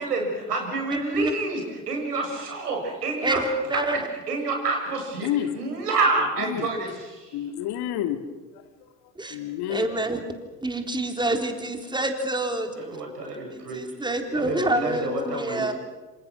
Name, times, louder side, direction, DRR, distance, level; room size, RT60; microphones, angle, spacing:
voice 1, 0.0-3.4 3.9-4.0 4.3-5.3 5.5-7.4 12.8-13.9 14.3-15.7, right 3 dB, 80° right, 2 dB, 7.0 m, -28 dB
voice 2, 3.2-4.0 9.2-9.4 9.7-10.2 10.6-12.7 13.5-15.7, right 1 dB, 10° right, 5 dB, 3.7 m, -27 dB
voice 3, 5.2-5.5 6.4-6.7 7.3-8.2 8.5-8.6 9.3-9.9, left 11 dB, 55° left, 9 dB, 2.3 m, -29 dB
27.5 x 27.0 x 6.4 m, 1.2 s
figure-of-eight pair, 70°, 46 cm